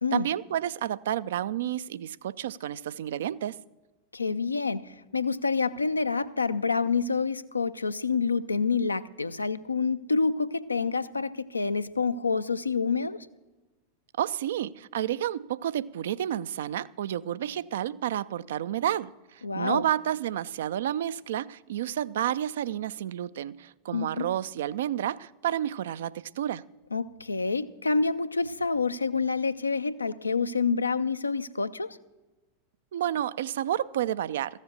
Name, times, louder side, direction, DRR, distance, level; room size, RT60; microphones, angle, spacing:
voice 1, 0.1-3.6 14.2-26.6 32.9-34.6, right 11 dB, 60° right, 0.3 m, -30 dB
voice 2, 4.1-13.3 19.4-19.8 23.9-24.3 26.9-32.0, left 4 dB, 80° left, 0.4 m, -28 dB
14.0 x 7.3 x 6.7 m
figure-of-eight pair, 90°, 0 cm